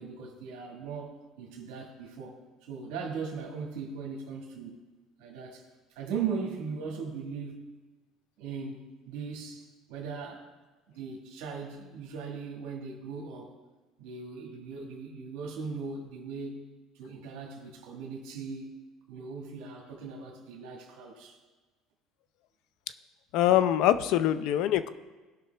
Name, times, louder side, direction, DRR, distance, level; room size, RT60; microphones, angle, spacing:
voice 1, 0.0-2.4 2.7-4.8 5.2-5.6 5.9-7.7 8.4-10.5 10.9-13.5 14.0-16.7 16.9-18.7 19.1-21.4, right 5 dB, 80° right, -1 dB, 1.5 m, -39 dB
voice 2, 23.3-24.9, left 12 dB, 70° left, 13 dB, 0.5 m, -24 dB
16.5 x 5.8 x 3.3 m, 1.2 s
cardioid pair, 110°, 0 cm